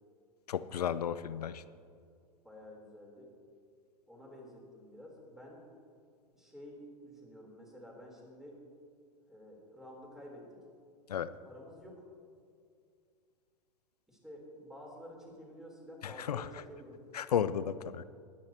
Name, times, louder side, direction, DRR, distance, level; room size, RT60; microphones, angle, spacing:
voice 1, 0.5-1.6 11.1-11.3 16.0-16.5 17.1-18.0, left 8 dB, 80° left, 15 dB, 0.5 m, -33 dB
voice 2, 2.4-3.3 4.1-5.7 6.3-8.6 9.3-10.5 11.4-12.0 14.1-17.0, equal, ahead, -3 dB, 3.8 m, -51 dB
21.5 x 10.0 x 3.0 m, 2.3 s
hypercardioid pair, 100°, 20 cm